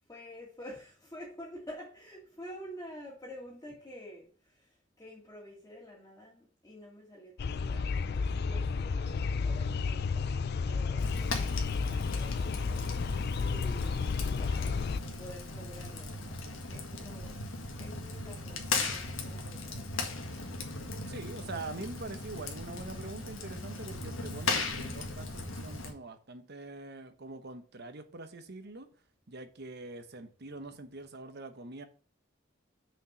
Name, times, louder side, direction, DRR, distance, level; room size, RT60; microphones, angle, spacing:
voice 1, 0.1-17.3 17.8-20.3, equal, 15° left, 2.1 m, -49 dB
sound 1, 7.4-15.0, left 4 dB, 55° left, 0.4 m, -32 dB
Fire, 11.0-25.9, left 3 dB, 80° left, 1.7 m, -38 dB
voice 2, 21.1-28.9 29.3-31.8, right 2 dB, 55° right, 1.0 m, -44 dB
6.3 x 4.9 x 6.7 m
head